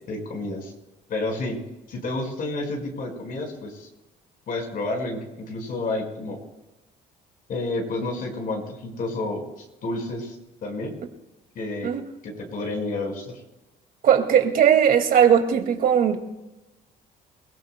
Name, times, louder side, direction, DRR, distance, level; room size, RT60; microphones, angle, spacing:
voice 1, 0.1-0.7 1.1-1.6 1.9-3.9 4.5-6.4 7.5-9.4 9.8-10.4 10.6-10.9 11.5-11.9 12.2-13.3, left 2 dB, 55° left, 5.0 m, -30 dB
voice 2, 14.0-16.2, right 8 dB, 60° right, 2.2 m, -18 dB
27.0 x 17.5 x 2.2 m
cardioid pair, 110°, 17 cm